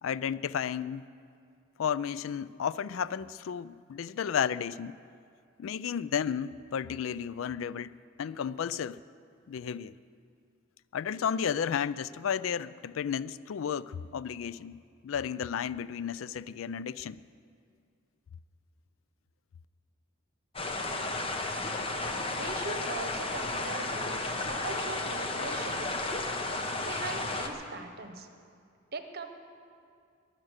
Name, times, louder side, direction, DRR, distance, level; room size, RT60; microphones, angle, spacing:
voice 1, 0.0-1.1 1.8-5.0 5.6-9.0 9.5-9.9 10.9-17.2, left 7 dB, 75° left, 17 dB, 0.4 m, -33 dB
sound 1, 20.5-27.5, left 2 dB, 30° left, 1.0 m, -33 dB
voice 2, 22.3-25.9 26.8-28.3 28.9-29.3, right 3 dB, 50° right, 7 dB, 1.1 m, -40 dB
21.5 x 7.6 x 6.5 m, 2.3 s
head